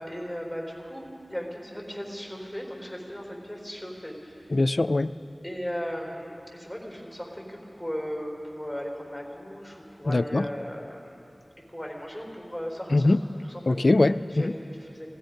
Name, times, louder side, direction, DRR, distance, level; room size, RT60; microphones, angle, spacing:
voice 1, 0.0-4.6 5.4-11.2 11.7-13.2 13.5-13.8 14.3-15.1, equal, 10° right, -1 dB, 4.3 m, -37 dB
voice 2, 4.5-5.1 10.1-10.4 12.9-13.2 13.7-14.5, left 2 dB, 60° left, 13 dB, 0.3 m, -22 dB
17.5 x 15.5 x 5.2 m, 2.6 s
wide cardioid pair, 65°, 0 cm